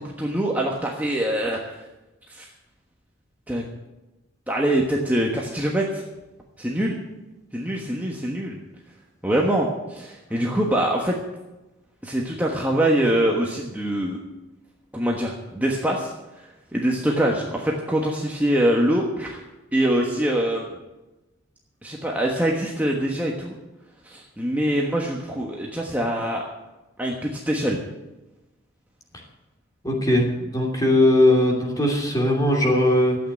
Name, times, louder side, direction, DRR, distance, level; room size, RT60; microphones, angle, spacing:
voice 1, 0.0-1.8 2.3-2.5 3.5-3.6 4.5-6.0 6.6-7.0 7.5-8.6 9.2-11.1 12.0-14.2 14.9-16.1 16.7-19.4 19.7-20.7 21.8-23.5 24.0-26.4 27.0-27.8, right 1 dB, 10° right, -1 dB, 1.3 m, -24 dB
voice 2, 29.8-33.2, left 1 dB, 20° left, 0 dB, 2.8 m, -19 dB
13.0 x 8.8 x 8.6 m, 1.0 s
head